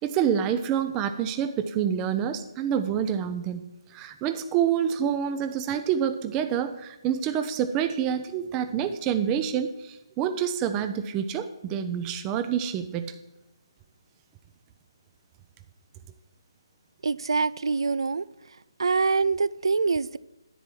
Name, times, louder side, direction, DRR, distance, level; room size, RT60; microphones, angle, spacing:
voice 1, 0.0-3.6 3.9-9.7 10.2-13.1, right 8 dB, 20° right, 9 dB, 0.5 m, -27 dB
voice 2, 17.0-18.2 18.8-20.2, right 4 dB, 75° right, 19 dB, 0.3 m, -24 dB
10.0 x 4.3 x 7.8 m, 0.99 s
figure-of-eight pair, 155°, 3 cm